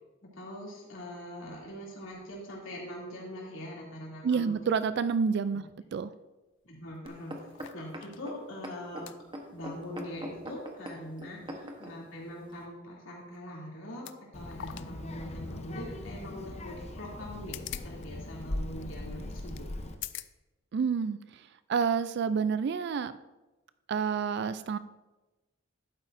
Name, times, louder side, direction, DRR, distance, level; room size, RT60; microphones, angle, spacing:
voice 1, 0.2-4.5 6.6-7.4 7.7-9.1 9.5-17.6 17.8-19.7, left 1 dB, 80° left, -4 dB, 2.8 m, -42 dB
voice 2, 4.2-5.6 5.9-6.1 20.7-21.4 21.7-23.1 23.9-24.8, right 6 dB, 55° right, 13 dB, 0.3 m, -28 dB
sound 1, 6.5-6.6 6.9-8.2 8.6-8.7 9.1-9.2 9.7-10.1 10.4-10.5 13.2-13.4 13.9-14.2 14.5-14.9 15.2-15.3 17.2-18.1 18.3-18.4 18.8-18.9 19.6-19.7 19.9-20.3 21.0-21.1, left 11 dB, 65° left, 0.4 m, -43 dB
sound 2, 7.1-11.9 12.6-12.7, equal, 25° right, 1.0 m, -42 dB
Child speech kid speaking, 14.3-19.9, left 1 dB, 35° left, 0.7 m, -40 dB
11.0 x 8.9 x 2.6 m, 1.1 s
head